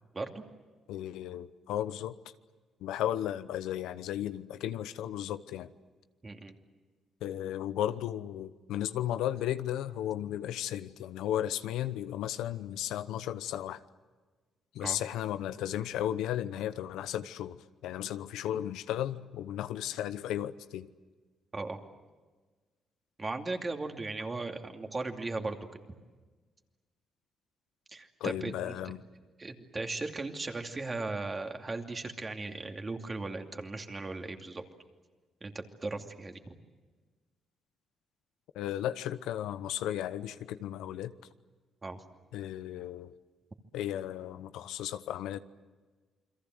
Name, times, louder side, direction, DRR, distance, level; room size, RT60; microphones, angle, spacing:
voice 1, 0.9-2.2 2.8-5.7 7.2-13.8 14.7-20.9 28.2-29.0 38.5-41.1 42.3-43.1 43.7-45.4, left 11 dB, 90° left, 0.9 m, -35 dB
voice 2, 6.2-6.6 14.8-15.0 21.5-21.8 23.2-25.6 27.9-28.9 29.4-34.6 35.4-36.5 41.8-42.0, right 3 dB, 30° right, 2.7 m, -37 dB
29.0 x 22.5 x 7.9 m
cardioid pair, 90°, 0 cm